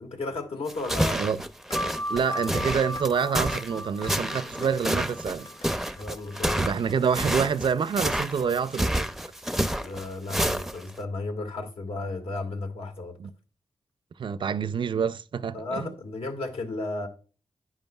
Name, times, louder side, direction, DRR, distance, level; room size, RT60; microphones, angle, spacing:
voice 1, 0.0-1.2 6.0-6.6 9.8-13.2 15.5-17.1, left 2 dB, 80° left, 2.0 m, -34 dB
sound 1, 0.7-11.0, right 1 dB, 5° right, 0.5 m, -29 dB
sound 2, 1.7-1.8 2.3-2.4 3.0-3.1 3.5-3.6 4.0-7.0, left 4 dB, 55° left, 1.6 m, -46 dB
sound 3, 1.7-6.9, equal, 35° left, 0.9 m, -37 dB
voice 2, 2.1-5.5 6.6-9.1 13.2-13.3 14.2-15.9, right 6 dB, 55° right, 0.4 m, -27 dB
10.5 x 9.3 x 2.3 m
wide cardioid pair, 125°, 10 cm